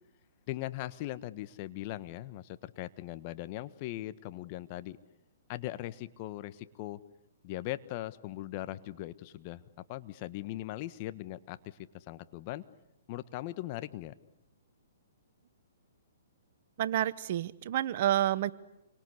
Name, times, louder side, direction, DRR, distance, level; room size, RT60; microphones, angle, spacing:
voice 1, 0.5-5.0 5.5-7.0 7.4-9.6 9.9-12.6 13.1-14.1, left 15 dB, 40° left, 13 dB, 1.4 m, -39 dB
voice 2, 16.8-18.5, right 12 dB, 50° right, 16 dB, 1.2 m, -29 dB
28.5 x 24.5 x 8.2 m, 0.87 s
hypercardioid pair, 130°, 0 cm